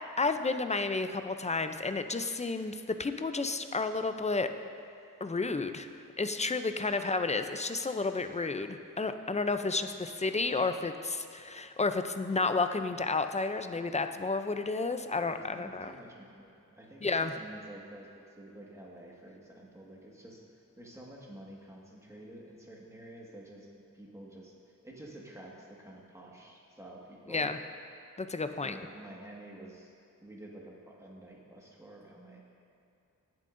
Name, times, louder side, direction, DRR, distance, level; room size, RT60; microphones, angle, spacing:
voice 1, 0.2-4.5 5.2-5.9 6.2-15.9 17.0-17.3 27.3-27.6 28.2-28.8, left 3 dB, 20° left, 8 dB, 0.4 m, -31 dB
voice 2, 9.7-10.0 15.2-20.4 20.7-23.7 23.9-24.6 24.8-27.5 28.6-29.9 30.2-32.4, right 1 dB, 10° right, -3 dB, 1.6 m, -50 dB
18.5 x 7.5 x 2.6 m, 2.5 s
wide cardioid pair, 100°, 33 cm